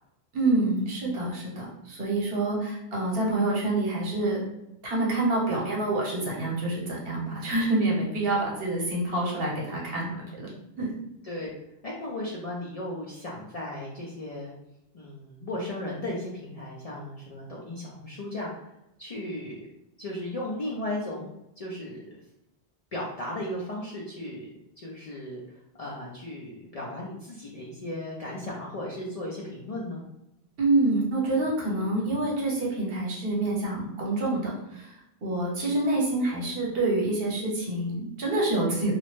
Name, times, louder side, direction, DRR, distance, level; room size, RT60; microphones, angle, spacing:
voice 1, 0.3-4.4 4.8-10.5 10.8-11.0 30.6-34.9 35.2-38.9, right 2 dB, 70° right, -3 dB, 1.0 m, -27 dB
voice 2, 11.8-14.5 14.9-18.5 19.0-19.7 20.0-21.3 21.6-22.0 22.9-24.5 24.8-30.0, left 1 dB, 50° left, -4 dB, 0.4 m, -36 dB
2.4 x 2.0 x 3.0 m, 0.88 s
omnidirectional pair, 1.1 m